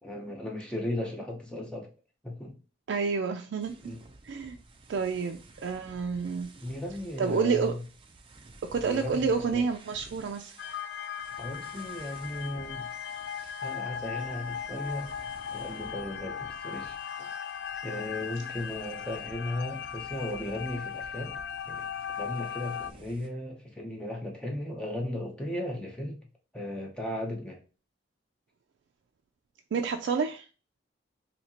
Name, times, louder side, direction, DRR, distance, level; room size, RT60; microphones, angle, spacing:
voice 1, 0.0-1.9 2.2-2.5 3.8-4.0 6.6-7.8 8.8-9.6 11.4-12.9 13.6-15.2 15.5-17.3 17.8-21.3 21.7-21.9 22.2-26.2 26.5-27.6, left 1 dB, 5° left, -1 dB, 0.8 m, -36 dB
voice 2, 2.9-3.8 4.2-4.6 4.9-6.5 7.2-7.8 8.7-10.5 29.7-30.4, right 5 dB, 85° right, 4 dB, 0.4 m, -29 dB
sound 1, 3.6-23.3, right 2 dB, 30° right, 0.5 m, -53 dB
sound 2, 10.6-22.9, left 8 dB, 65° left, 0.3 m, -38 dB
4.3 x 2.8 x 2.8 m, 0.34 s
head